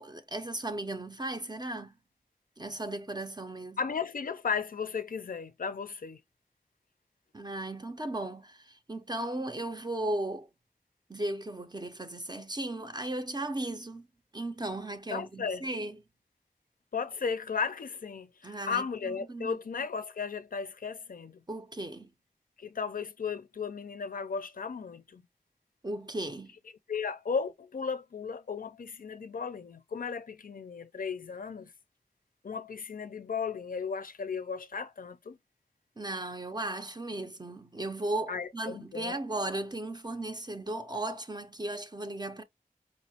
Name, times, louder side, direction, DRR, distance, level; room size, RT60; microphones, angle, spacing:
voice 1, 0.0-1.9 2.6-3.8 7.3-10.5 11.1-14.1 14.3-16.0 18.4-19.6 21.5-22.1 25.8-26.5 36.0-42.4, right 1 dB, 30° right, 0.4 m, -36 dB
voice 2, 3.8-6.2 15.1-15.7 16.9-21.4 22.6-25.2 26.9-31.7 32.4-35.4 38.3-39.2, left 6 dB, 70° left, 0.4 m, -35 dB
4.6 x 2.0 x 2.7 m
wide cardioid pair, 45°, 15 cm